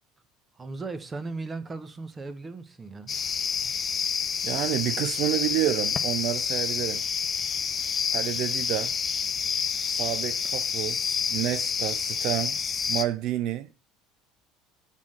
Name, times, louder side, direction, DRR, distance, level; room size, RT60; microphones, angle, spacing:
voice 1, 0.5-3.2, right 3 dB, 25° right, 1.0 m, -37 dB
sound 1, 3.1-13.0, left 6 dB, 35° left, 0.7 m, -28 dB
voice 2, 4.4-7.1 8.1-8.9 9.8-11.0 11.3-12.6 12.9-13.7, right 14 dB, 65° right, 0.4 m, -29 dB
7.4 x 3.6 x 6.4 m
supercardioid pair, 95°, 0 cm